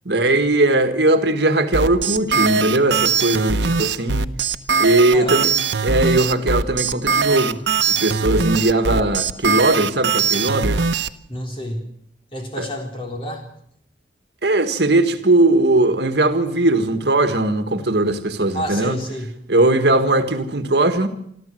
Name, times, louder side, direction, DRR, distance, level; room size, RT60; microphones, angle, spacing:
voice 1, 0.1-4.3 4.8-5.5 5.8-7.6 8.0-10.8 12.6-12.7 14.4-19.0 19.5-21.1, right 2 dB, 65° right, 9 dB, 1.7 m, -19 dB
sound 1, 1.7-11.1, right 5 dB, 85° right, 0.9 m, -20 dB
voice 2, 5.1-5.5 11.3-11.9 12.3-13.5 18.5-19.3, equal, 30° left, 2 dB, 4.0 m, -29 dB
26.5 x 13.5 x 7.7 m, 0.72 s
head